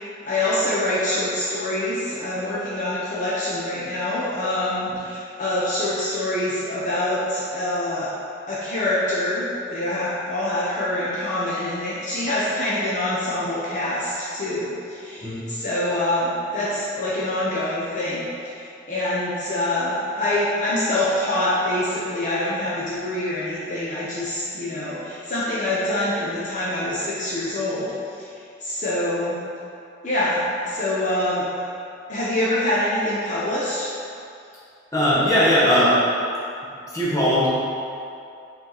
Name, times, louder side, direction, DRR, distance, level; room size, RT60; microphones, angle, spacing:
voice 1, 0.2-8.1 8.5-18.3 18.5-27.9 28.2-28.3 28.6-29.4 30.0-31.7 32.1-33.9, left 1 dB, 45° left, -9 dB, 0.9 m, -25 dB
voice 2, 34.9-36.0 36.9-37.5, equal, 20° left, -9 dB, 1.3 m, -19 dB
5.1 x 4.6 x 4.0 m, 2.6 s
head